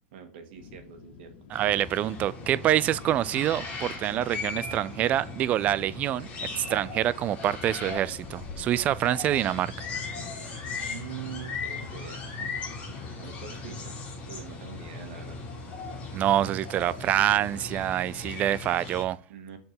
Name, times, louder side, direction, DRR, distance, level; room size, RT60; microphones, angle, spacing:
voice 1, 0.1-1.3 10.8-12.5 13.2-14.0 14.3-15.4 19.3-19.6, right 8 dB, 55° right, 2.0 m, -43 dB
sound 1, 0.5-18.9, left 6 dB, 65° left, 1.7 m, -50 dB
sound 2, 1.5-19.0, left 4 dB, 20° left, 2.8 m, -38 dB
voice 2, 1.5-9.7 16.1-19.2, right 12 dB, 25° right, 0.3 m, -26 dB
6.6 x 4.5 x 6.0 m
supercardioid pair, 160°, 6 cm